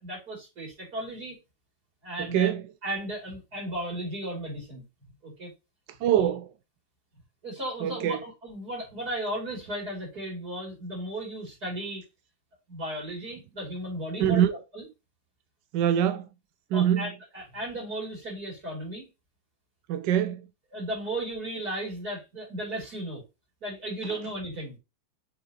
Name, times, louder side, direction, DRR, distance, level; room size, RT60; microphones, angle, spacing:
voice 1, 0.0-1.4 2.0-2.5 2.8-4.8 5.2-5.5 6.1-6.3 7.4-12.0 12.7-14.8 16.7-19.1 20.7-23.2 23.6-24.8, right 1 dB, 55° right, 3.5 m, -35 dB
voice 2, 2.2-2.6 6.0-6.4 7.8-8.2 14.2-14.6 15.7-16.3 16.7-17.1 19.9-20.5, right 10 dB, 80° right, 1.2 m, -24 dB
7.2 x 4.9 x 2.9 m
omnidirectional pair, 2.0 m